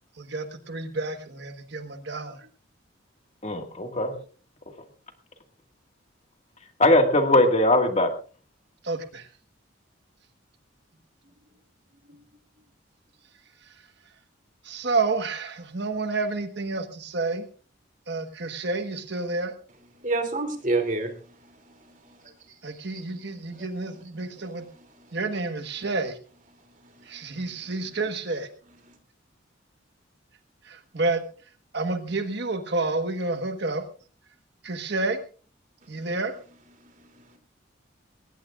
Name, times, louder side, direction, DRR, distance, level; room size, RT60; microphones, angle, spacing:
voice 1, 0.2-2.5 8.8-9.3 13.6-13.8 14.6-17.4 18.1-19.5 22.6-24.6 25.1-26.2 27.0-28.5 30.6-31.2 31.7-33.8 34.6-35.2 35.9-36.3, right 3 dB, 55° right, 7 dB, 1.4 m, -29 dB
voice 2, 3.4-4.1 6.8-8.1, left 1 dB, 35° left, 5 dB, 1.9 m, -20 dB
voice 3, 20.0-21.2 21.8-22.2 23.5-23.7 24.4-24.5 27.0-27.2, right 2 dB, 40° right, 5 dB, 2.9 m, -28 dB
20.0 x 18.0 x 2.5 m, 0.38 s
head